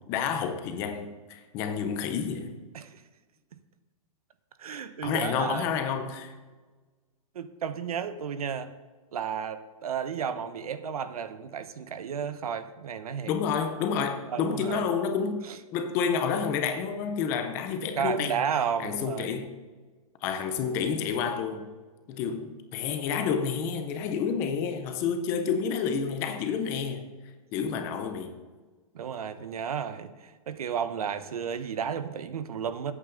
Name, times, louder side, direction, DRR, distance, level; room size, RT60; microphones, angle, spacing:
voice 1, 0.1-2.6 4.7-6.3 13.3-18.4 18.8-19.5 20.2-21.7 22.1-27.0 27.5-28.4, left 6 dB, 15° left, 0.5 m, -29 dB
voice 2, 4.6-5.7 7.3-8.7 9.1-13.3 14.2-14.8 15.5-15.6 18.0-19.4 28.9-32.9, right 7 dB, 80° right, 1.0 m, -33 dB
13.5 x 8.7 x 3.8 m
hypercardioid pair, 180°, 19 cm